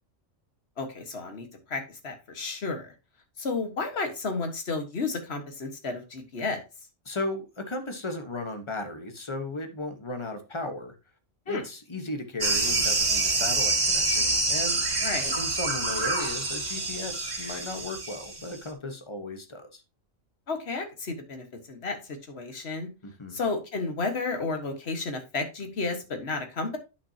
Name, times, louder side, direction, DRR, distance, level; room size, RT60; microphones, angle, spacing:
voice 1, 0.8-2.9 3.4-6.6 11.5-11.6 15.0-15.3 20.5-22.9 23.3-26.8, left 3 dB, 55° left, 5 dB, 1.7 m, -32 dB
voice 2, 7.0-10.9 11.5-14.8 15.4-19.8 23.0-23.4, left 2 dB, 25° left, 6 dB, 1.1 m, -35 dB
sound 1, 12.4-18.6, right 2 dB, 75° right, 2.2 m, -27 dB
10.0 x 6.0 x 2.8 m, 0.28 s
omnidirectional pair, 1.3 m